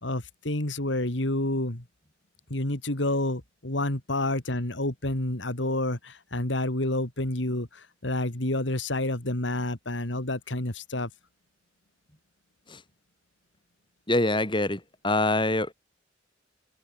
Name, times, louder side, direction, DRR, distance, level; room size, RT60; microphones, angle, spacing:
voice 1, 0.0-1.8 2.5-11.1, left 1 dB, 75° left, 3.1 m, -29 dB
voice 2, 14.1-15.7, left 2 dB, 25° left, 6.0 m, -25 dB
head